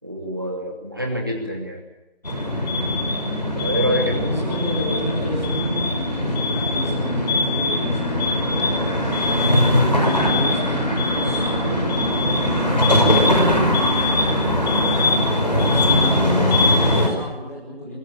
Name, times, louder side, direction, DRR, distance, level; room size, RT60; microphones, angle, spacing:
voice 1, 0.0-1.8 3.6-4.2 4.5-4.9, equal, 20° right, 1 dB, 2.8 m, -26 dB
sound 1, 2.2-17.1, left 1 dB, 45° left, 5.4 m, -20 dB
voice 2, 4.0-8.1 9.1-11.8 12.7-14.5 15.6-17.9, equal, 15° left, -9 dB, 7.1 m, -32 dB
23.5 x 21.5 x 8.8 m, 0.96 s
figure-of-eight pair, 175°, 30 cm